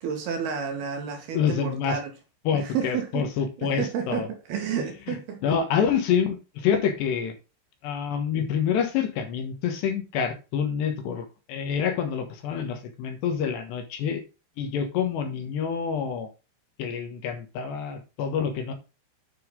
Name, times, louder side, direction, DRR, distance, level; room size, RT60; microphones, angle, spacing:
voice 1, 0.0-2.1 2.5-3.3 3.6-4.2 4.5-5.6, right 7 dB, 65° right, 3.0 m, -31 dB
voice 2, 1.3-2.0 2.5-4.3 5.1-7.3 7.8-14.2 14.6-16.3 16.8-18.7, left 7 dB, 70° left, 3.3 m, -27 dB
9.5 x 6.5 x 3.7 m
omnidirectional pair, 5.5 m